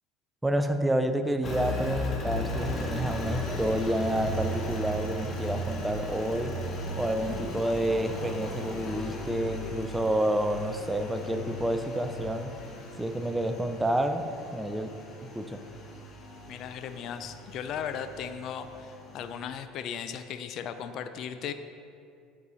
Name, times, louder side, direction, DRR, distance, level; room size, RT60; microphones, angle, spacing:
voice 1, 0.4-6.6 7.0-12.6 13.0-14.9 15.3-15.6, right 1 dB, 5° right, 8 dB, 0.5 m, -29 dB
Engine, 1.4-19.4, left 1 dB, 35° left, 1.1 m, -37 dB
voice 2, 16.5-21.5, left 8 dB, 55° left, 9 dB, 0.4 m, -37 dB
8.2 x 4.7 x 4.0 m, 2.4 s
supercardioid pair, 105°, 0 cm